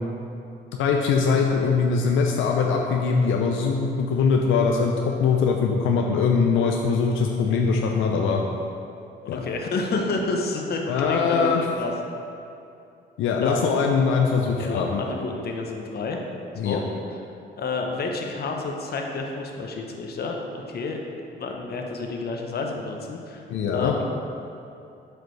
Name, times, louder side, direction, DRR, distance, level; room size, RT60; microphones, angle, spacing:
voice 1, 0.8-8.4 9.3-9.4 10.9-11.6 13.2-15.0 16.6-16.8 23.5-23.9, left 5 dB, 85° left, 1 dB, 0.5 m, -22 dB
voice 2, 9.3-10.8 11.1-11.9 13.4-13.7 14.6-16.2 16.6-16.8 17.6-21.0 21.4-23.4 23.7-24.2, left 3 dB, 55° left, 2 dB, 0.9 m, -29 dB
7.8 x 5.0 x 3.2 m, 2.6 s
cardioid pair, 90°, 20 cm